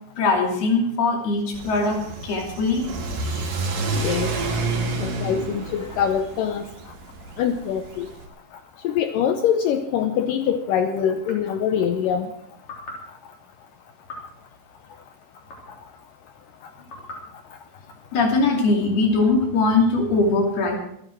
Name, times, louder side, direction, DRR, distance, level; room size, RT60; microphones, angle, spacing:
voice 1, 0.2-2.0 2.2-2.9 3.2-3.5 18.1-20.8, left 3 dB, 65° left, 0 dB, 4.6 m, -21 dB
Car / Accelerating revving vroom, 1.5-8.3, right 3 dB, 55° right, 3.5 m, -29 dB
voice 2, 3.9-4.4 5.0-6.6 7.4-8.1 8.8-12.3, left 8 dB, 90° left, 7 dB, 1.9 m, -24 dB
sound 1, 11.2-11.6 12.6-13.1 14.0-14.4 15.4-15.9 16.8-17.3, left 2 dB, 35° left, 4.2 m, -40 dB
25.5 x 9.4 x 4.6 m, 0.74 s
omnidirectional pair, 4.9 m